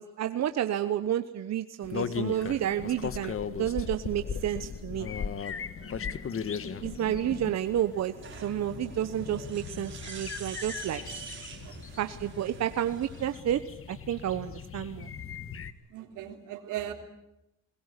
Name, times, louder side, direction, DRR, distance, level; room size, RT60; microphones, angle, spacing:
voice 1, 0.0-3.3 3.6-5.1 6.8-11.0 12.0-13.6 13.9-15.1, right 11 dB, 60° right, 10 dB, 1.0 m, -30 dB
sound 1, 1.8-15.7, left 7 dB, 45° left, 1.5 m, -38 dB
voice 2, 5.5-6.3 11.6-11.7 15.9-16.9, right 12 dB, 90° right, 5 dB, 3.4 m, -40 dB
sound 2, 5.8-13.4, right 5 dB, 40° right, 4.5 m, -47 dB
21.5 x 20.5 x 9.8 m, 0.88 s
cardioid pair, 90°, 30 cm